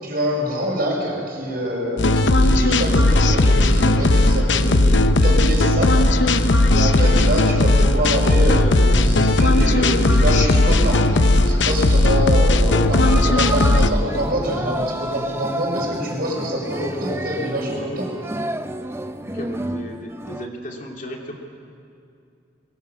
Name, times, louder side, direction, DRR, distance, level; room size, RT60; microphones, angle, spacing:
voice 1, 0.0-6.4 6.7-11.1 11.4-18.1, equal, 55° right, -2 dB, 6.4 m, -25 dB
sound 1, 2.0-13.9, left 2 dB, 80° left, 0.9 m, -16 dB
sound 2, 12.7-20.5, right 1 dB, 15° right, 0.6 m, -30 dB
voice 2, 19.2-21.3, equal, 45° left, 0 dB, 2.7 m, -35 dB
22.5 x 18.0 x 8.4 m, 2.6 s
head